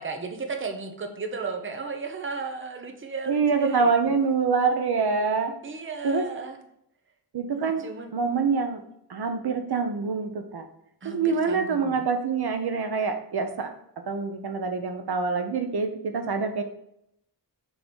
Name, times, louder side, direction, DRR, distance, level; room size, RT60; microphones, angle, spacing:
voice 1, 0.0-4.2 5.6-6.6 7.5-8.1 11.0-12.1, right 4 dB, 30° right, 4 dB, 0.9 m, -35 dB
voice 2, 3.3-5.5 6.0-6.2 7.3-7.8 8.1-8.8 9.1-10.6 11.0-13.7 14.1-16.6, right 5 dB, 70° right, 6 dB, 1.0 m, -25 dB
6.8 x 3.9 x 6.3 m, 0.75 s
wide cardioid pair, 165°, 40 cm